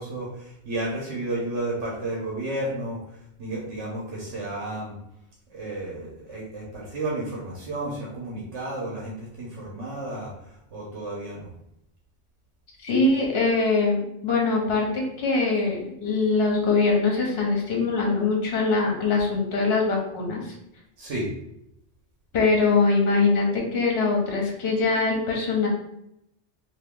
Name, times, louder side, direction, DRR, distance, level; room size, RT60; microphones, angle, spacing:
voice 1, 0.0-4.9 5.5-11.5 21.0-21.3, right 1 dB, 80° right, -3 dB, 1.1 m, -32 dB
voice 2, 12.8-20.5 22.3-25.7, left 3 dB, 60° left, -1 dB, 1.1 m, -23 dB
2.9 x 2.7 x 3.5 m, 0.80 s
omnidirectional pair, 1.2 m